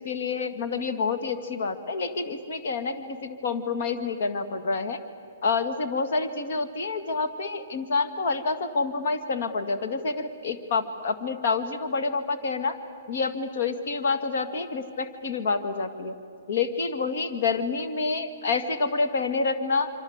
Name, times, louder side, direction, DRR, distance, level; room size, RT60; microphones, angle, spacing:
voice 1, 0.0-5.0 5.4-12.8 13.1-16.2 16.5-19.9, left 4 dB, 55° left, 7 dB, 2.1 m, -28 dB
26.5 x 26.5 x 8.1 m, 2.5 s
hypercardioid pair, 170°, 0 cm